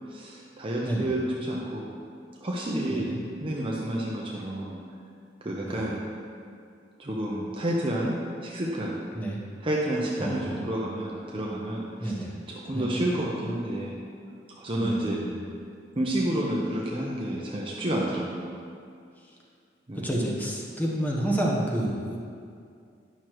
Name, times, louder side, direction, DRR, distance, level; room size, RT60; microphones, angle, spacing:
voice 1, 0.1-1.9 2.4-4.8 5.4-6.1 7.0-9.0 9.6-12.1 12.5-13.9 14.6-15.2 16.0-18.6 19.9-20.1, right 1 dB, 30° right, -4 dB, 0.7 m, -30 dB
voice 2, 2.9-3.2 5.6-5.8 9.1-9.4 10.2-10.6 12.0-12.3 12.7-13.0 14.8-15.4 20.0-22.2, right 1 dB, 10° left, -3 dB, 1.0 m, -29 dB
10.5 x 6.1 x 3.1 m, 2.3 s
head